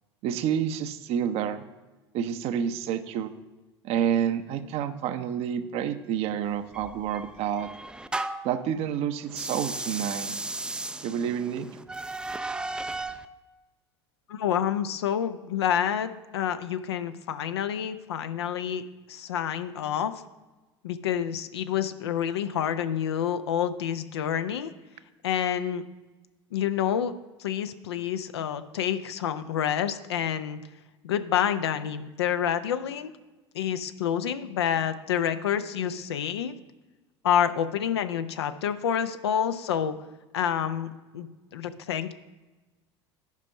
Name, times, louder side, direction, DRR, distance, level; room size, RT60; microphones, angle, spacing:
voice 1, 0.2-1.6 2.1-3.3 3.8-7.7 8.4-10.3 11.0-11.7, right 9 dB, 45° right, 10 dB, 0.7 m, -29 dB
sound 1, 6.7-8.6 9.3-13.2, right 2 dB, 5° right, 0.4 m, -35 dB
voice 2, 14.3-18.8 19.1-20.2 20.8-24.7 25.2-25.8 26.5-27.1 27.4-30.6 31.0-33.1 33.5-36.5 37.2-39.9 40.3-42.1, left 9 dB, 70° left, 11 dB, 0.6 m, -28 dB
10.5 x 5.2 x 5.3 m, 1.2 s
figure-of-eight pair, 70°, 14 cm